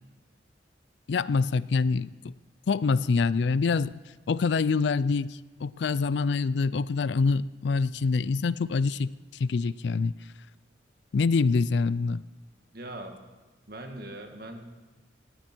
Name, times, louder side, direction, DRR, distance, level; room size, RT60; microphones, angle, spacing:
voice 1, 1.1-2.1 2.7-3.9 4.3-9.1 9.4-10.1 11.1-12.2, left 4 dB, 65° left, 18 dB, 0.4 m, -25 dB
voice 2, 12.7-13.2 13.7-14.7, right 1 dB, 50° right, 4 dB, 1.9 m, -40 dB
19.0 x 15.5 x 4.5 m, 1.2 s
head